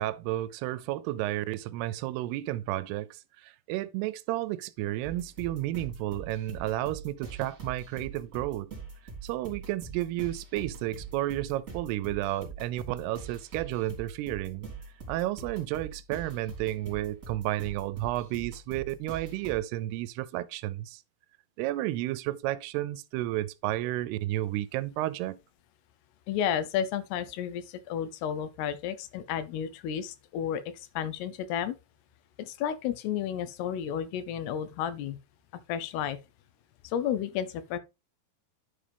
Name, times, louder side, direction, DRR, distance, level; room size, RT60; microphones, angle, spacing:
voice 1, 0.0-8.7 9.2-14.7 15.1-21.0 21.6-25.4, right 15 dB, 85° right, 2.6 m, -32 dB
sound 1, 5.0-19.6, right 4 dB, 20° right, 3.2 m, -43 dB
voice 2, 26.3-30.6 31.0-31.8 32.4-35.2 35.7-36.2 36.8-37.8, left 9 dB, 85° left, 2.8 m, -32 dB
9.9 x 5.1 x 3.4 m
omnidirectional pair, 4.6 m